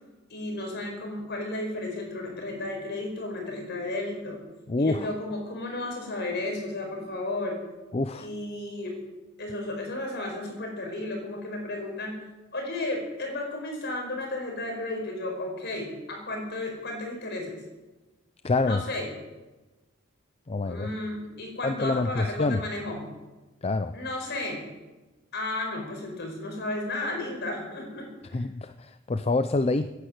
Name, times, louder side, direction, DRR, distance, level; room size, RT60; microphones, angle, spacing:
voice 1, 0.3-4.4 4.8-7.6 8.2-8.9 9.4-12.2 12.5-17.6 18.6-19.1 20.6-23.1 23.9-24.7 25.3-28.1, left 2 dB, 55° left, 2 dB, 5.1 m, -33 dB
voice 2, 4.7-5.1 7.9-8.3 18.4-18.8 20.5-20.9 21.6-22.6 23.6-24.0 28.3-29.9, left 3 dB, 30° left, 11 dB, 0.5 m, -26 dB
16.5 x 10.5 x 8.1 m, 1.1 s
head